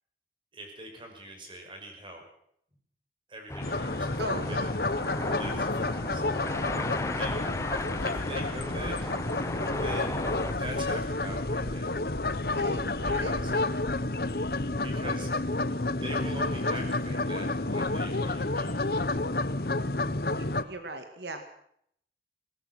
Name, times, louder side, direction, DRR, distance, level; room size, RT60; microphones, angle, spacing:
voice 1, 0.5-2.2 3.3-4.1 4.5-4.6 5.4-6.2 7.1-7.4 8.0-9.1 9.7-12.0 13.0-13.5 14.8-18.8 19.1-19.2 20.4-20.7, right 1 dB, 30° right, 3 dB, 5.9 m, -43 dB
sound 1, 3.5-10.5, left 2 dB, 15° left, 1.0 m, -35 dB
sound 2, 3.6-20.6, left 2 dB, 60° left, 1.1 m, -30 dB
voice 2, 4.2-4.7 6.4-6.6 12.5-13.8 20.6-21.5, right 2 dB, 80° right, 7 dB, 2.1 m, -40 dB
sound 3, 4.4-15.4, equal, 35° left, 6.0 m, -54 dB
22.0 x 18.5 x 6.3 m, 0.69 s
head